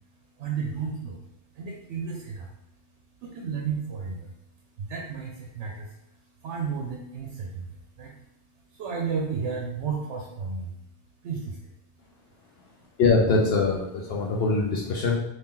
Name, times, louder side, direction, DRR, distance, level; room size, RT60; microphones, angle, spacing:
voice 1, 0.1-2.6 3.2-4.3 4.7-10.7 11.2-11.7, right 5 dB, 85° right, 1 dB, 0.9 m, -33 dB
voice 2, 13.0-15.2, left 3 dB, 65° left, -1 dB, 0.8 m, -23 dB
2.9 x 2.8 x 3.6 m, 0.83 s
omnidirectional pair, 1.2 m